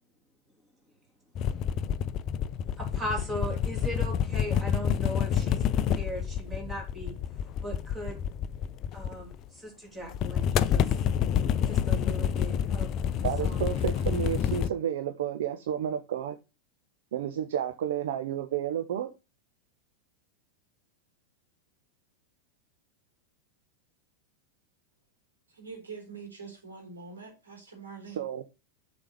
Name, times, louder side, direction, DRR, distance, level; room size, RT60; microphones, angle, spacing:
sound 1, 1.3-9.5 10.1-14.7, left 8 dB, 35° left, 0.5 m, -28 dB
voice 1, 2.8-7.1 7.6-8.2 8.9-10.8 11.7-12.9 13.4-13.8, equal, 15° right, 3.6 m, -38 dB
voice 2, 13.2-16.4 17.1-19.1 28.1-28.4, right 10 dB, 60° right, 0.8 m, -31 dB
voice 3, 25.6-28.2, right 5 dB, 75° right, 3.7 m, -44 dB
6.9 x 5.2 x 6.6 m
figure-of-eight pair, 90°, 0 cm